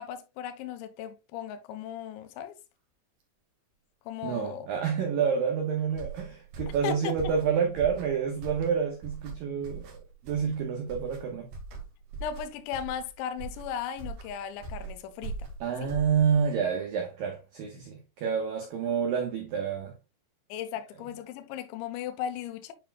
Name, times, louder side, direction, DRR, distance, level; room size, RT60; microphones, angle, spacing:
voice 1, 0.0-2.6 4.1-4.7 6.8-7.2 12.2-15.5 15.8-15.9 20.5-22.7, left 8 dB, 80° left, 2.9 m, -36 dB
voice 2, 4.2-9.9 10.2-11.5 15.6-19.9, right 7 dB, 80° right, 2.0 m, -28 dB
sound 1, 5.9-16.5, right 4 dB, 55° right, 2.7 m, -41 dB
9.5 x 5.3 x 2.2 m
omnidirectional pair, 5.7 m